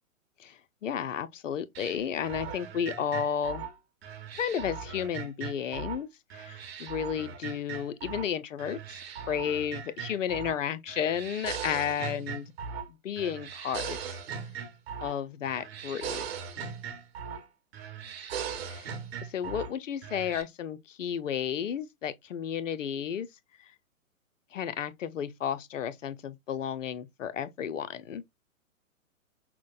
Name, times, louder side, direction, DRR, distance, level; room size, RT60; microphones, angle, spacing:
voice 1, 0.4-3.6 4.4-12.5 12.9-14.2 15.0-16.2 18.7-19.0 19.2-23.3 24.5-28.2, left 8 dB, 65° left, 0.6 m, -33 dB
sound 1, 1.7-6.0 6.3-8.3 8.6-10.6 10.9-12.9 13.2-15.2 15.4-17.5 17.7-19.7 20.0-20.4, right 7 dB, 45° right, 1.0 m, -39 dB
5.9 x 2.1 x 2.4 m
figure-of-eight pair, 120°, 41 cm